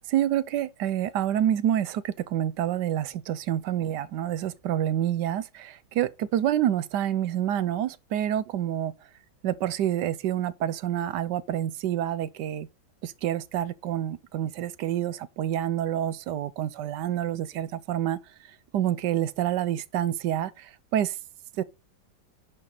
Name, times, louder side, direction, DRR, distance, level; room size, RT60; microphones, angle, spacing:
voice 1, 0.1-8.9 9.4-12.7 13.0-21.2 21.6-21.7, right 11 dB, 75° right, 1.2 m, -28 dB
11.0 x 5.2 x 4.0 m
omnidirectional pair, 2.0 m